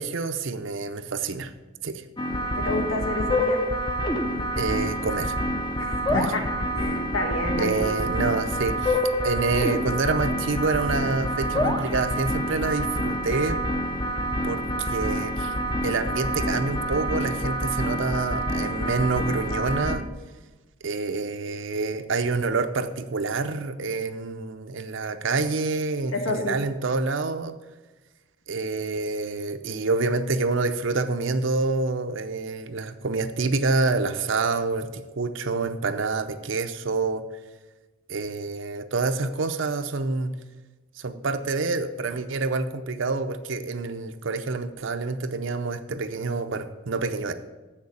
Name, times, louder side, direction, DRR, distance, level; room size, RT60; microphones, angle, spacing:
voice 1, 0.0-1.5 1.8-2.0 4.6-5.4 6.1-6.3 7.6-9.0 9.2-13.6 14.4-15.5 15.8-20.0 20.8-27.6 28.5-37.2 38.1-40.3 41.0-47.3, right 3 dB, 60° right, 9 dB, 0.6 m, -27 dB
sound 1, 2.2-20.0, equal, 20° left, 0.7 m, -27 dB
voice 2, 2.5-3.6 6.1-7.9 26.1-26.6, left 2 dB, 70° left, 4 dB, 1.4 m, -29 dB
7.6 x 6.6 x 7.1 m, 1.2 s
head